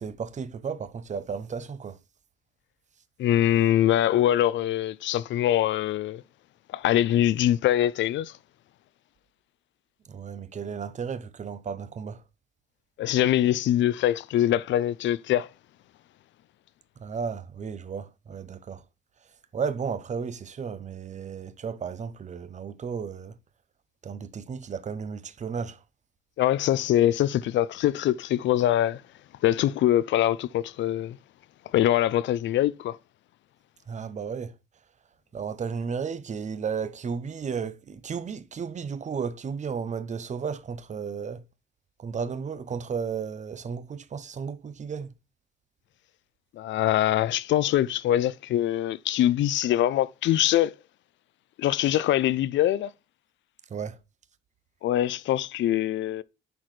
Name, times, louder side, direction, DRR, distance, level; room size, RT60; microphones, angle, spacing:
voice 1, 0.0-2.0 10.1-12.2 17.0-18.8 19.5-23.3 24.0-25.8 33.9-34.5 35.3-41.4 42.0-45.1 53.7-54.0, right 6 dB, 35° right, 0.7 m, -34 dB
voice 2, 3.2-6.2 6.7-8.3 13.0-15.5 26.4-29.0 29.4-31.2 31.7-33.0 46.6-50.7 51.6-52.9 54.8-56.2, left 12 dB, 70° left, 0.5 m, -23 dB
10.0 x 4.0 x 3.2 m
cardioid pair, 90°, 20 cm